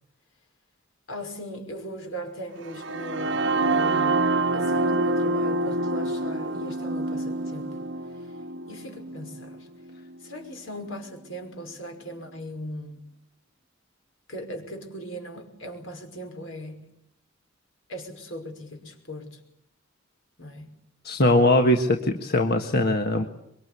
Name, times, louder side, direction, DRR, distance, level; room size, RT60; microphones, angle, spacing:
voice 1, 1.1-7.8 8.7-9.7 10.2-13.0 14.3-16.9 17.9-19.4 20.4-20.7, equal, 75° left, 5.6 m, -39 dB
sound 1, 2.6-10.5, right 2 dB, 65° right, 1.0 m, -27 dB
voice 2, 21.0-23.2, left 1 dB, 50° left, 1.5 m, -21 dB
25.0 x 23.0 x 8.3 m
head